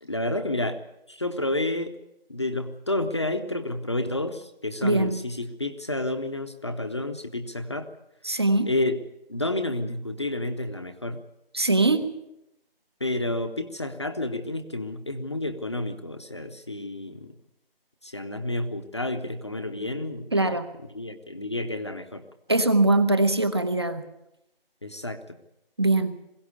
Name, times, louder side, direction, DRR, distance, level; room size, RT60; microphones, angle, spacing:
voice 1, 0.0-0.8 1.1-1.9 2.3-7.9 8.6-9.0 9.3-11.2 13.0-17.3 18.0-20.5 20.9-22.2 24.8-25.4, left 1 dB, 30° left, 7 dB, 0.9 m, -30 dB
voice 2, 4.8-5.2 8.2-8.7 11.5-12.0 20.3-20.7 22.5-24.0 25.8-26.2, right 2 dB, 25° right, 11 dB, 1.0 m, -22 dB
21.5 x 17.0 x 8.2 m, 0.87 s
figure-of-eight pair, 175°, 30 cm